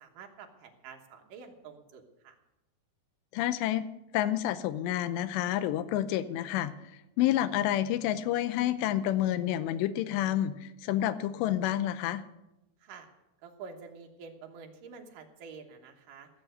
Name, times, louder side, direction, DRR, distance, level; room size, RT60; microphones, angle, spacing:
voice 1, 0.0-2.4 12.8-13.1 13.4-16.3, right 5 dB, 65° right, 3 dB, 2.4 m, -48 dB
voice 2, 3.3-3.9 4.1-6.7 7.2-12.2, left 12 dB, 90° left, 12 dB, 2.9 m, -29 dB
16.0 x 7.2 x 7.8 m, 0.93 s
omnidirectional pair, 5.0 m